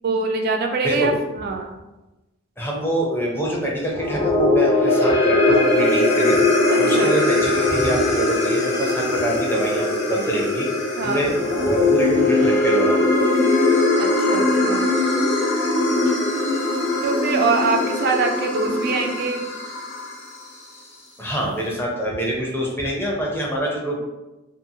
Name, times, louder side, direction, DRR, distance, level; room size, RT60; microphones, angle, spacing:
voice 1, 0.0-1.7 6.7-7.4 11.0-11.3 14.0-14.9 17.0-19.5, right 3 dB, 50° right, 2 dB, 0.3 m, -24 dB
voice 2, 2.6-6.4 6.8-10.7 11.0-11.4 11.6-13.1 21.2-24.0, right 1 dB, 10° left, -2 dB, 0.5 m, -25 dB
sound 1, 3.9-20.3, left 2 dB, 60° left, 1.0 m, -20 dB
2.7 x 2.5 x 2.7 m, 1.0 s
head